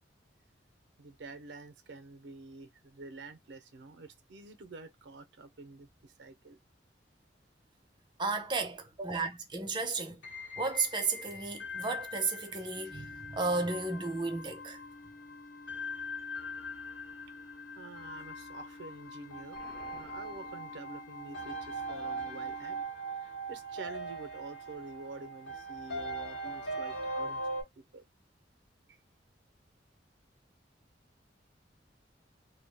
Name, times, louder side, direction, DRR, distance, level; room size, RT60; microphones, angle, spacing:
voice 1, 1.0-6.6 12.8-12.9 17.7-19.6 19.9-22.8 23.2-27.4 27.8-28.0, right 3 dB, 75° right, 0.5 m, -48 dB
voice 2, 8.2-10.2 10.6-14.8, right 3 dB, 25° right, 0.5 m, -33 dB
sound 1, 10.2-27.6, right 1 dB, 90° left, 1.1 m, -41 dB
sound 2, 12.8-22.9, left 2 dB, 40° left, 0.4 m, -53 dB
Explosion, 19.5-21.4, left 2 dB, 20° left, 1.1 m, -56 dB
2.2 x 2.1 x 3.3 m
head